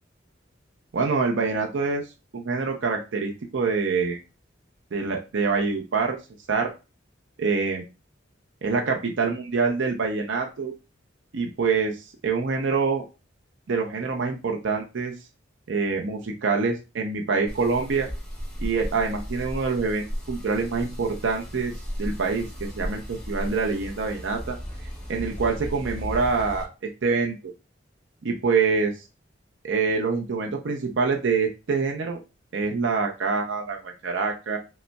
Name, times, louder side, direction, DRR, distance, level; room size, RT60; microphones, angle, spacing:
voice 1, 0.9-2.0 2.3-4.2 4.9-6.2 6.5-6.7 7.4-7.8 8.6-10.7 11.3-13.0 13.7-15.1 15.7-18.1 18.6-21.7 22.0-24.6 25.1-27.4 28.2-28.9 29.6-32.2 32.5-34.6, right 4 dB, 75° right, 2 dB, 0.5 m, -25 dB
sound 1, 17.5-26.7, equal, 5° left, 0.9 m, -35 dB
5.1 x 2.0 x 2.2 m, 0.29 s
head